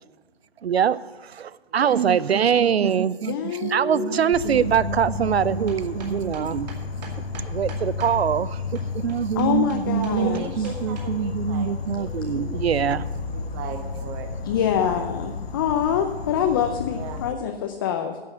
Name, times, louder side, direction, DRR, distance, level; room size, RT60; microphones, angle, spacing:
voice 1, 0.6-6.7 7.4-13.1, right 8 dB, 85° right, 0.6 m, -23 dB
voice 2, 1.7-2.0 2.5-3.1 3.6-4.1 9.9-12.8 13.3-15.0 16.9-17.2, right 6 dB, 25° right, 1.3 m, -38 dB
voice 3, 3.3-4.6 9.4-10.5 14.5-18.2, left 8 dB, 20° left, 0.5 m, -25 dB
Insect, 4.3-17.3, left 5 dB, 75° left, 1.0 m, -32 dB
sound 1, 5.4-8.1 8.7-11.1, right 4 dB, 45° right, 2.5 m, -42 dB
11.0 x 7.0 x 8.0 m
hypercardioid pair, 140°, 31 cm